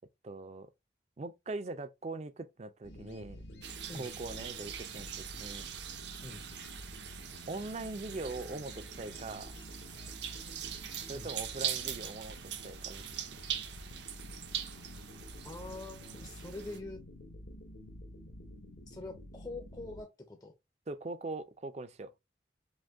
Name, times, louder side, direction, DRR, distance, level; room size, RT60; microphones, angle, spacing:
voice 1, 0.2-0.7 1.2-3.4 4.0-5.6 7.5-9.5 11.1-13.0 20.9-22.1, right 3 dB, 35° right, 0.4 m, -41 dB
sound 1, 2.8-20.0, left 1 dB, 70° left, 0.9 m, -49 dB
sound 2, 3.6-16.8, right 10 dB, 70° right, 0.7 m, -42 dB
voice 2, 15.4-17.0 18.9-20.5, left 2 dB, 20° left, 0.5 m, -44 dB
5.1 x 2.2 x 3.5 m
head